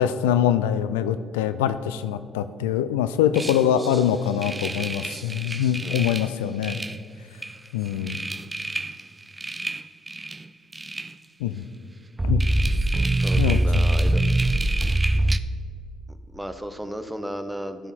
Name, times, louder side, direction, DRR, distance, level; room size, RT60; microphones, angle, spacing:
voice 1, 0.0-6.8 7.7-8.2 11.4-11.6 12.2-12.4 13.4-13.8, left 9 dB, 85° left, 12 dB, 0.3 m, -24 dB
sound 1, 3.3-4.0 4.4-6.3 6.6-7.0 7.4-7.6 7.9-9.0 9.4-10.4 10.7-11.1 12.2-15.4, right 1 dB, 20° right, 0.4 m, -24 dB
voice 2, 13.1-14.2 16.1-17.9, equal, 5° right, 9 dB, 0.9 m, -34 dB
12.5 x 6.9 x 4.2 m, 2.1 s
hypercardioid pair, 55°, 0 cm